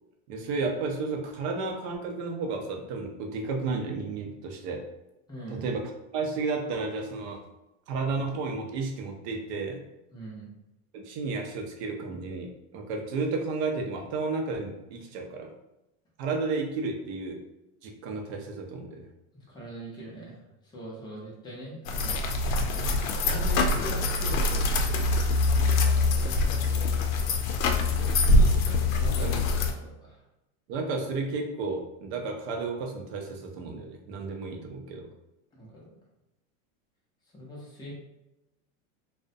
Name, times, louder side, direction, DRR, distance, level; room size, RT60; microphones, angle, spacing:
voice 1, 0.3-4.8 5.5-7.4 7.9-9.8 10.9-15.5 16.2-17.4 17.8-19.0 28.0-29.4 30.7-35.1, right 3 dB, 55° right, 3 dB, 0.6 m, -32 dB
voice 2, 5.3-5.6 10.1-10.5 19.5-20.4 20.7-22.2 22.7-26.9 27.2-27.3 28.9-29.4 29.7-30.2 35.6-35.9 37.3-37.9, equal, 10° left, -5 dB, 0.5 m, -42 dB
sound 1, 21.9-29.7, left 2 dB, 90° left, 0.5 m, -24 dB
2.4 x 2.1 x 2.5 m, 0.92 s
supercardioid pair, 140°, 40 cm